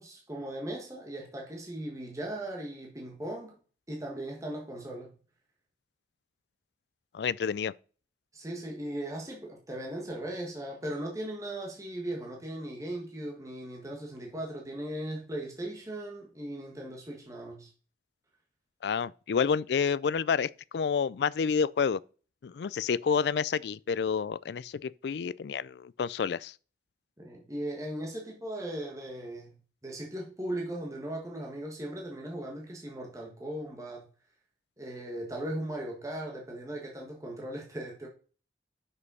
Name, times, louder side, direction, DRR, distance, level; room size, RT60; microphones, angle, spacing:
voice 1, 0.0-3.6 3.9-5.1 8.3-17.7 27.2-29.5 29.8-34.1 34.8-38.1, right 1 dB, 20° right, 1.5 m, -38 dB
voice 2, 7.1-7.7 18.8-22.0 22.4-26.5, left 6 dB, 65° left, 0.4 m, -29 dB
6.4 x 5.3 x 5.5 m
head